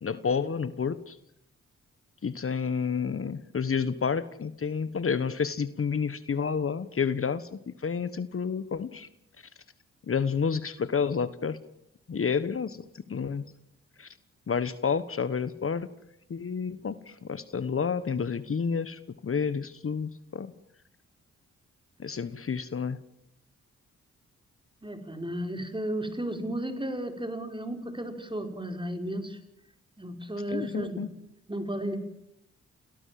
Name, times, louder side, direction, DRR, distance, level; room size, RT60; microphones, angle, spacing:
voice 1, 0.0-1.2 2.2-9.1 10.1-11.6 12.1-13.4 14.0-14.1 14.5-15.9 16.3-20.5 22.0-23.0 30.5-31.1, left 6 dB, 45° left, 14 dB, 1.3 m, -30 dB
voice 2, 24.8-29.4 30.0-31.0 31.5-32.0, right 1 dB, 15° right, 7 dB, 5.0 m, -34 dB
29.5 x 18.0 x 7.7 m, 0.77 s
supercardioid pair, 50°, 30 cm